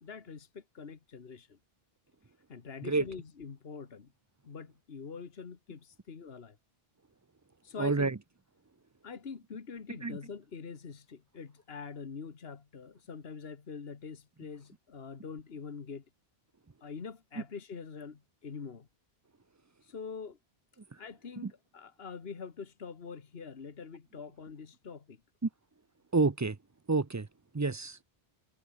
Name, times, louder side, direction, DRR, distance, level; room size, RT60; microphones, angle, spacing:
voice 1, 0.0-1.6 2.5-4.1 4.4-6.6 7.6-8.1 9.0-16.1 16.8-18.9 19.8-20.4 21.0-25.2, left 5 dB, 70° left, 1.7 m, -44 dB
voice 2, 7.8-8.2 10.0-10.2 20.9-21.0 21.4-21.5 25.4-25.5 26.1-26.6 26.9-27.3 27.5-28.0, right 3 dB, 20° right, 0.5 m, -29 dB
omnidirectional pair, 1.0 m